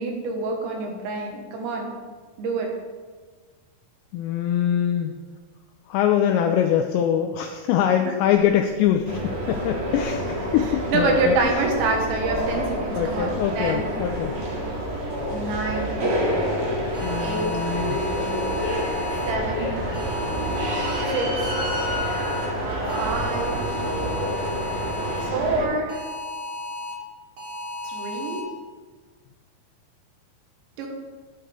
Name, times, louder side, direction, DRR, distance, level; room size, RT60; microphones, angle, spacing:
voice 1, 0.0-2.0 2.4-2.7 10.9-13.9 15.3-16.0 17.2-17.5 19.3-19.7 21.1-21.6 23.0-23.6 25.3-26.0 27.8-28.4 30.8-30.9, right 3 dB, 75° right, 1 dB, 3.5 m, -26 dB
voice 2, 4.1-5.1 5.9-9.2 9.5-11.5 13.0-14.4 17.0-18.0, left 9 dB, 85° left, 5 dB, 2.5 m, -23 dB
sound 1, 8.4-20.8, left 3 dB, 55° left, 4.7 m, -39 dB
sound 2, 9.1-25.7, equal, 50° right, 3.0 m, -28 dB
sound 3, 16.9-19.3 19.9-21.0 21.4-22.5 22.9-25.3 25.9-26.9 27.4-28.4, left 2 dB, 35° right, 2.5 m, -34 dB
11.0 x 9.3 x 3.4 m, 1.4 s
omnidirectional pair, 5.6 m